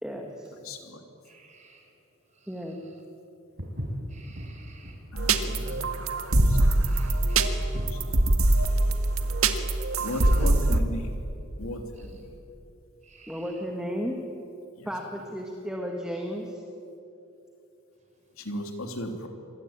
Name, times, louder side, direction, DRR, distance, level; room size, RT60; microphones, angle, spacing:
voice 1, 0.0-0.5 2.5-2.8 10.4-10.7 13.3-14.2 14.9-16.6, equal, 5° right, 1 dB, 1.8 m, -34 dB
voice 2, 0.6-1.0 5.1-5.8 6.3-6.6 6.8-7.5 8.1-8.2 10.0-11.1 11.6-11.8 12.1-12.2 18.4-19.3, equal, 85° left, 4 dB, 3.1 m, -36 dB
voice 3, 1.2-1.9 2.3-2.5 4.1-5.0 5.3-5.8 6.8-7.7 9.9-10.5 12.0-12.2 13.0-13.5, right 4 dB, 35° right, 2 dB, 5.2 m, -55 dB
Walk footsteps, 3.6-8.1, equal, 50° right, 5.4 m, -34 dB
sound 1, 5.2-10.8, right 2 dB, 85° right, 1.7 m, -23 dB
26.5 x 20.5 x 9.0 m, 2.9 s
head